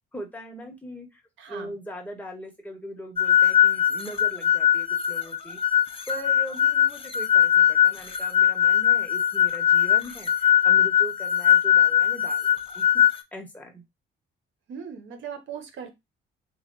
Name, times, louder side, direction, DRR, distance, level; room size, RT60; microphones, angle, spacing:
voice 1, 0.1-1.2 1.5-5.6 6.1-12.5 12.7-13.0 13.3-13.8, equal, 10° left, 2 dB, 1.2 m, -40 dB
voice 2, 1.4-1.7 14.7-15.9, right 7 dB, 75° right, 6 dB, 1.0 m, -38 dB
sound 1, 3.2-13.2, left 10 dB, 30° left, 0.5 m, -21 dB
3.2 x 2.3 x 3.8 m, 0.20 s
cardioid pair, 90°, 20 cm